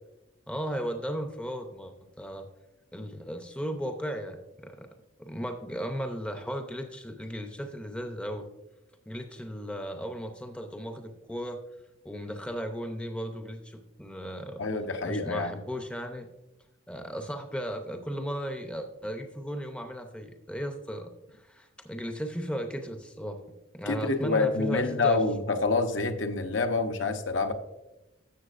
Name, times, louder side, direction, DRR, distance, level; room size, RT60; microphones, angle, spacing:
voice 1, 0.5-2.5 2.9-4.9 5.2-8.5 9.1-11.6 12.0-14.6 15.1-16.3 16.9-23.4 23.7-25.2, equal, 5° left, 5 dB, 0.6 m, -36 dB
voice 2, 14.6-15.5 23.9-27.5, left 3 dB, 70° left, 6 dB, 0.8 m, -27 dB
13.0 x 7.2 x 2.5 m, 0.96 s
head